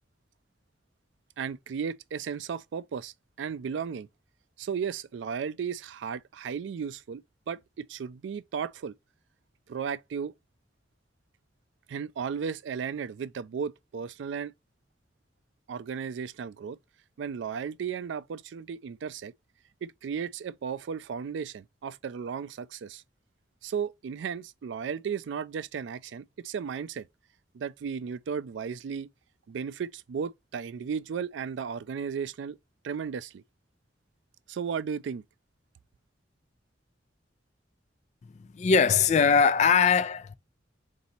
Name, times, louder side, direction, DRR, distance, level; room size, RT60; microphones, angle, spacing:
voice 1, 1.4-4.1 4.6-8.9 9.7-10.3 11.9-14.5 15.7-16.8 17.2-19.3 19.8-23.0 23.6-27.1 27.5-29.1 29.5-32.6 32.8-33.4 34.5-35.2, right 6 dB, 85° right, 0.3 m, -35 dB
voice 2, 38.2-40.3, left 6 dB, 40° left, 0.3 m, -22 dB
4.0 x 2.7 x 4.1 m
head